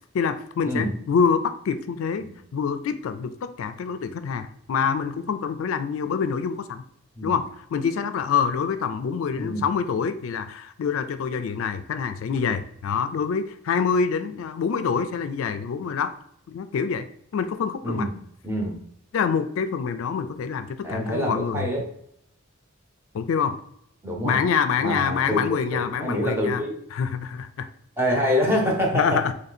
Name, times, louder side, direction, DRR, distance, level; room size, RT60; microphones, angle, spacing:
voice 1, 0.1-2.3 2.5-6.8 7.2-7.4 7.7-16.1 16.5-17.1 17.3-18.1 19.1-21.7 23.1-23.6 24.2-26.6 26.9-27.7 28.9-29.3, left 6 dB, 75° left, 10 dB, 0.3 m, -26 dB
voice 2, 17.8-18.1 18.4-18.8 20.8-21.9 24.0-24.4 24.8-25.4 25.7-26.8 28.0-29.3, equal, 10° right, -1 dB, 0.8 m, -26 dB
3.2 x 2.7 x 4.0 m, 0.70 s
head